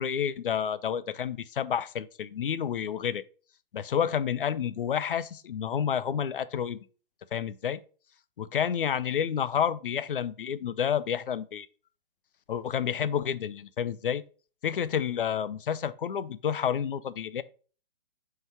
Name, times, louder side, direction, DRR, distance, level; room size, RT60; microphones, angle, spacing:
voice 1, 0.0-3.2 3.7-6.8 7.3-7.8 8.4-11.7 12.5-14.2 14.6-17.4, left 8 dB, 65° left, 0.6 m, -29 dB
5.2 x 4.0 x 4.5 m
figure-of-eight pair, 135°, 29 cm